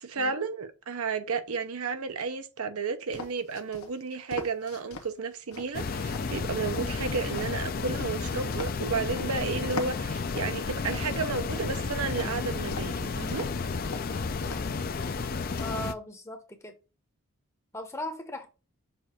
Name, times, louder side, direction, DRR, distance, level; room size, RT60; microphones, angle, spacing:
voice 1, 0.0-13.5, right 4 dB, 75° right, 0.8 m, -32 dB
sound 1, 3.1-5.1 5.5-9.3 9.7-11.7 12.1-13.0 13.3-13.6 13.9-14.0 14.4-14.8 15.0-15.8, left 3 dB, 75° left, 1.0 m, -41 dB
sound 2, 5.7-15.9, left 4 dB, 40° left, 0.4 m, -32 dB
voice 2, 15.6-16.7 17.7-18.5, left 1 dB, 10° left, 0.8 m, -37 dB
6.8 x 2.6 x 5.6 m
head